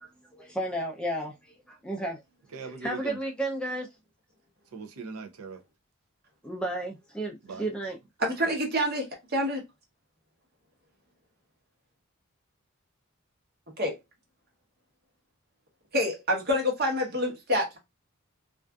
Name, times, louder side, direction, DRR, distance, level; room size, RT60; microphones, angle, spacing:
voice 1, 0.0-1.3 1.7-2.2 2.8-3.9 6.4-8.0, right 1 dB, 5° left, 0.3 m, -33 dB
voice 2, 2.5-3.2 4.7-5.6 7.4-7.7 8.3-8.6, right 5 dB, 75° right, 0.5 m, -40 dB
voice 3, 8.2-9.0 9.3-9.6 13.8-13.9 15.9-17.8, equal, 45° right, 0.9 m, -27 dB
2.4 x 2.4 x 2.2 m
head